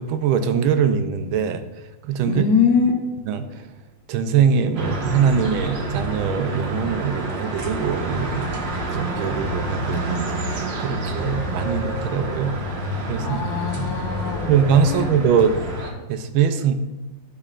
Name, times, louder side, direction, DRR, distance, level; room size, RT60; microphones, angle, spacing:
voice 1, 0.0-1.6 2.0-2.4 3.3-3.7 4.1-8.5 8.9-12.5 13.1-13.4 14.5-15.5 16.1-16.7, right 7 dB, 80° right, 9 dB, 1.4 m, -22 dB
voice 2, 2.2-2.9 13.2-14.5 14.9-15.1, left 5 dB, 55° left, 3 dB, 1.3 m, -22 dB
sound 1, 4.8-15.9, right 1 dB, 65° right, 1.6 m, -28 dB
10.5 x 5.4 x 2.4 m, 1.1 s
omnidirectional pair, 2.2 m